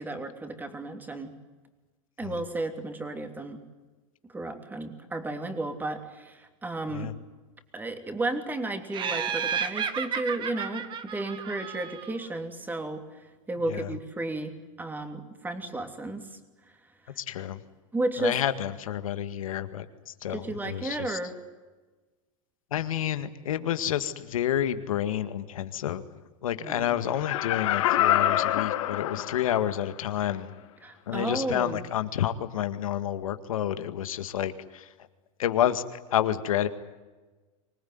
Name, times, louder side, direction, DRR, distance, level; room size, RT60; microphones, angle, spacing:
voice 1, 0.0-1.3 2.2-3.6 4.3-7.1 7.7-16.4 17.0-17.1 17.9-18.4 20.3-21.4 26.6-27.2 30.8-31.8, right 2 dB, 10° right, 7 dB, 3.0 m, -33 dB
Laughter, 8.9-12.2, right 7 dB, 30° right, 1.9 m, -32 dB
voice 2, 17.2-17.6 18.2-21.2 22.7-26.0 26.4-30.5 31.1-34.9 35.4-36.7, left 11 dB, 90° left, 10 dB, 2.0 m, -29 dB
Laughter 2, 27.1-29.8 30.2-30.3, left 13 dB, 70° left, 2.1 m, -26 dB
25.0 x 19.5 x 9.6 m, 1.2 s
supercardioid pair, 130°, 17 cm